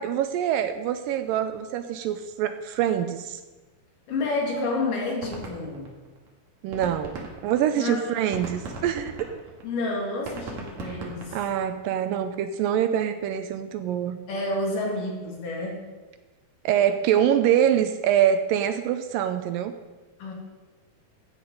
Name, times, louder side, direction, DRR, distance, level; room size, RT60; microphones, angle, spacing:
voice 1, 0.0-3.4 6.6-9.3 11.3-14.2 16.7-19.8, right 10 dB, 80° right, 9 dB, 2.2 m, -25 dB
voice 2, 4.1-5.9 7.7-8.1 9.6-11.4 14.3-15.9 20.2-20.3, left 2 dB, 65° left, -1 dB, 3.7 m, -29 dB
sound 1, 4.2-4.3 4.6-4.7 5.0-6.3 6.6-11.9, right 2 dB, 55° right, 3.0 m, -38 dB
13.5 x 9.1 x 5.3 m, 1.2 s
omnidirectional pair, 4.2 m